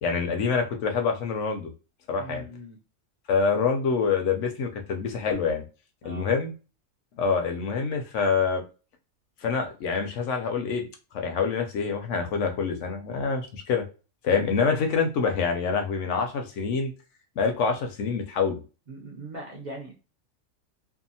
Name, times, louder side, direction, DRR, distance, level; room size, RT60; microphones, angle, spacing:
voice 1, 0.0-1.7 2.1-2.4 3.3-5.6 6.0-6.5 7.2-8.6 9.4-10.9 11.1-13.8 14.2-16.9 17.4-18.6, left 5 dB, 70° left, 4 dB, 0.9 m, -26 dB
voice 2, 2.2-2.8 6.0-6.3 18.9-19.9, right 1 dB, 55° right, -3 dB, 0.5 m, -40 dB
2.7 x 2.3 x 2.6 m, 0.33 s
omnidirectional pair, 1.4 m